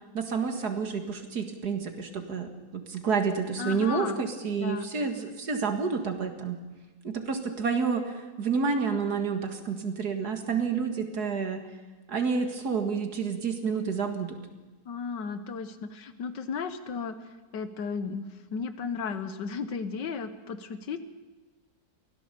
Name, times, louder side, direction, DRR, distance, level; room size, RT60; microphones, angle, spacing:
voice 1, 0.1-6.6 7.0-11.6 12.1-14.4, right 5 dB, 60° right, 6 dB, 2.3 m, -29 dB
voice 2, 3.6-4.2 4.6-4.9 14.9-17.2 17.5-21.0, left 5 dB, 70° left, 10 dB, 1.7 m, -34 dB
24.0 x 16.5 x 6.8 m, 1.2 s
omnidirectional pair, 2.0 m